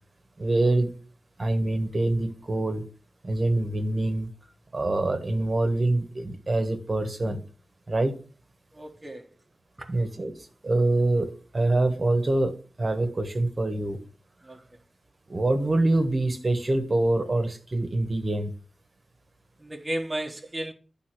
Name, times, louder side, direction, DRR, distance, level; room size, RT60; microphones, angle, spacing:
voice 1, 0.4-0.9 1.4-2.8 3.2-4.3 4.7-7.4 7.9-8.2 9.9-14.0 15.3-18.5, right 2 dB, 45° right, 1.4 m, -25 dB
voice 2, 8.7-9.3 9.8-9.9 14.4-14.6 19.6-20.7, right 1 dB, 25° right, 1.3 m, -34 dB
9.6 x 3.8 x 6.0 m
cardioid pair, 55°, 0 cm